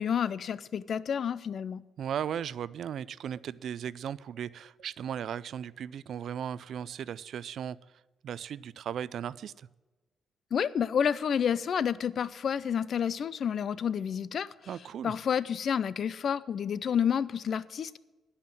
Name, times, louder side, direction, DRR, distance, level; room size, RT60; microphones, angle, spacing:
voice 1, 0.0-1.8 10.5-14.5 15.0-18.0, left 8 dB, 60° left, 0.4 m, -29 dB
voice 2, 2.0-7.8 8.2-9.7 14.7-15.1, right 9 dB, 70° right, 0.3 m, -36 dB
11.0 x 5.6 x 8.9 m
cardioid pair, 90°, 0 cm